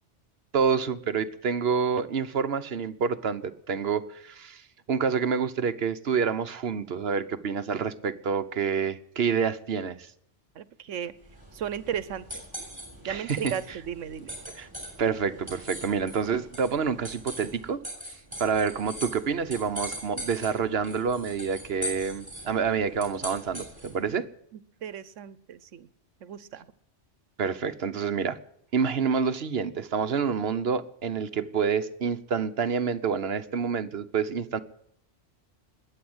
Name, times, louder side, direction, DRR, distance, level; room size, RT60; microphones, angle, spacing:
voice 1, 0.5-4.6 4.9-10.1 13.0-13.5 14.6-14.7 15.0-17.8 18.4-24.3 27.4-28.4 28.7-34.6, right 6 dB, 60° right, 1.2 m, -28 dB
voice 2, 10.5-11.1 11.5-12.4 13.1-14.4 24.5-25.9 26.2-26.7, right 9 dB, 85° right, 1.2 m, -35 dB
sound 1, 11.2-24.1, equal, 15° right, 6.7 m, -41 dB
20.5 x 8.7 x 8.0 m
omnidirectional pair, 1.2 m